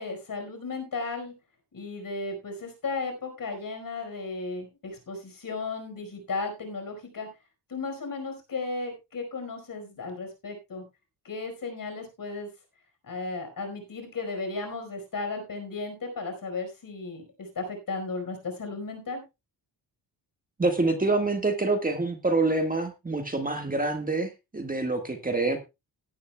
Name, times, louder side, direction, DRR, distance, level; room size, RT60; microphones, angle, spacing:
voice 1, 0.0-1.3 1.7-7.3 7.7-10.8 11.2-12.5 13.0-19.2, left 3 dB, 50° left, 6 dB, 4.9 m, -35 dB
voice 2, 20.6-25.6, right 3 dB, 20° right, 5 dB, 1.7 m, -26 dB
17.0 x 11.5 x 2.3 m, 0.25 s
cardioid pair, 105°, 44 cm